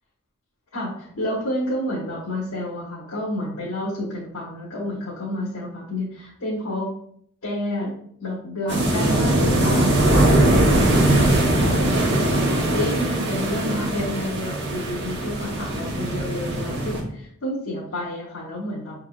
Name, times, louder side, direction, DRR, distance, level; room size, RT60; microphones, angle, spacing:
voice 1, 0.7-6.9 7.4-7.9 8.2-18.9, left 1 dB, 70° left, -6 dB, 1.2 m, -30 dB
sound 1, 8.7-17.0, right 1 dB, 50° right, 1.0 m, -20 dB
6.0 x 3.7 x 2.4 m, 0.65 s
head